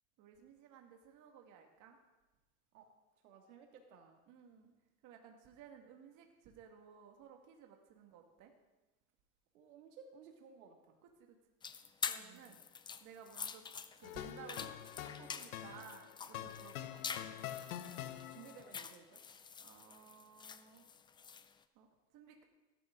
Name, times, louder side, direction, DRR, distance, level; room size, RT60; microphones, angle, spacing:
voice 1, 0.2-2.0 4.3-4.7 5.0-8.5 11.2-11.4 12.0-12.6 13.0-13.6 14.0-17.0 19.6-20.8 21.8-21.9 22.1-22.4, right 7 dB, 45° right, 3 dB, 2.1 m, -57 dB
voice 2, 3.2-4.2 9.5-11.0 12.1-12.6 17.8-19.2, right 6 dB, 90° right, 2 dB, 2.7 m, -58 dB
sound 1, 11.6-21.5, left 6 dB, 10° left, 0.4 m, -46 dB
sound 2, 14.0-18.7, left 11 dB, 80° left, 1.2 m, -46 dB
16.5 x 13.0 x 3.9 m, 1.1 s
supercardioid pair, 125°, 42 cm